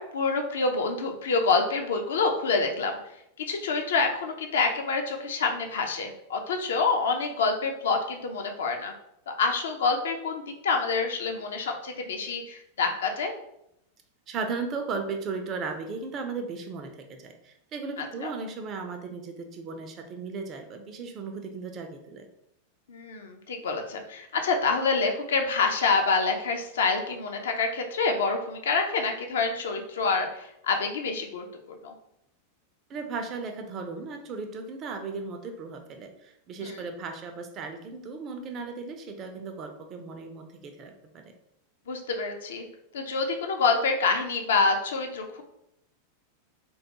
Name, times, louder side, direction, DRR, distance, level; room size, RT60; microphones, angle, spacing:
voice 1, 0.0-2.9 3.4-8.9 9.3-13.3 18.0-18.3 22.9-31.9 36.6-36.8 41.9-42.7 42.9-45.4, left 4 dB, 60° left, 4 dB, 0.3 m, -27 dB
voice 2, 14.3-22.3 32.9-41.3, right 4 dB, 30° right, 6 dB, 0.3 m, -36 dB
2.2 x 2.1 x 2.8 m, 0.79 s
figure-of-eight pair, 90°, 0 cm